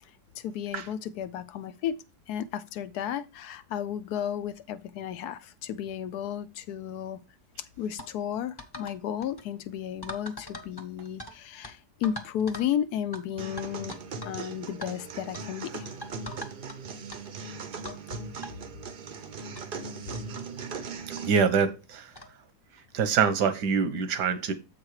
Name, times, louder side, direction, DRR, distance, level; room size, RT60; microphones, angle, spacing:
voice 1, 0.0-2.0 2.3-7.2 7.8-13.9 14.2-16.0, left 9 dB, 75° left, 1.1 m, -33 dB
sound 1, 8.0-8.1 8.6-9.0 9.2-9.4 10.0-11.3 11.6-11.7 12.0-12.7 13.1-13.2 13.6-14.4 14.7-14.9 15.3-15.5 16.0-16.8 17.1-17.2 17.9-18.0 18.4-18.5 19.3-19.4 19.6-19.7 20.1-20.3 21.2-21.3 22.2-22.4, left 1 dB, 20° left, 0.8 m, -41 dB
sound 2, 13.4-21.4, right 4 dB, 50° right, 0.6 m, -39 dB
voice 2, 21.2-22.1 22.9-24.5, right 6 dB, 85° right, 1.5 m, -25 dB
7.4 x 4.8 x 4.7 m
omnidirectional pair, 1.8 m